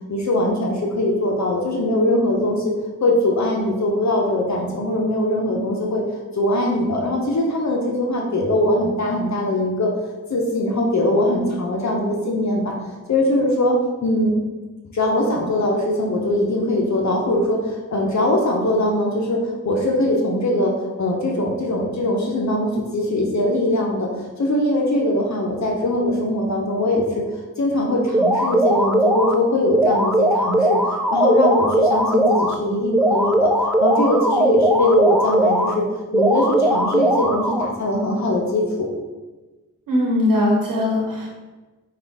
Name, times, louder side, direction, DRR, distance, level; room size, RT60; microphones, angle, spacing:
voice 1, 0.1-2.7 3.0-6.0 6.3-9.9 10.3-12.7 13.1-13.7 14.0-14.3 14.9-20.7 21.0-24.1 24.4-27.2 27.6-30.8 31.1-35.9 36.1-38.9, left 1 dB, 55° left, -1 dB, 0.8 m, -21 dB
sound 1, 28.1-29.3 29.7-32.5 32.9-35.7 36.1-37.7, right 1 dB, 5° right, 0.4 m, -19 dB
voice 2, 39.9-41.3, left 1 dB, 75° right, -2 dB, 1.1 m, -20 dB
5.0 x 2.4 x 3.5 m, 1.2 s
cardioid pair, 40°, 33 cm